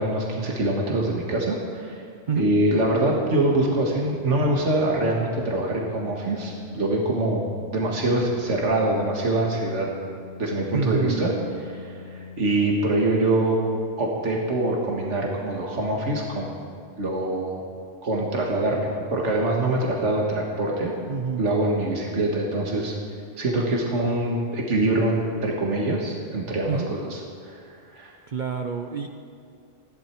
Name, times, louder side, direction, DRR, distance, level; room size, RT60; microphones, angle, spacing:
voice 1, 0.0-2.0 2.4-7.4 7.7-9.9 10.4-11.3 11.7-13.6 14.0-16.5 17.0-17.6 18.0-20.9 21.4-22.9 23.4-27.6 27.9-28.1, right 2 dB, 75° right, -1 dB, 2.0 m, -24 dB
Organ, 2.2-13.0, left 6 dB, 20° left, 2.9 m, -42 dB
voice 2, 10.7-11.3 21.1-21.5 26.7-26.9 28.3-29.1, right 5 dB, 45° right, 4 dB, 0.8 m, -27 dB
20.0 x 14.5 x 4.6 m, 2.4 s
omnidirectional pair, 1.2 m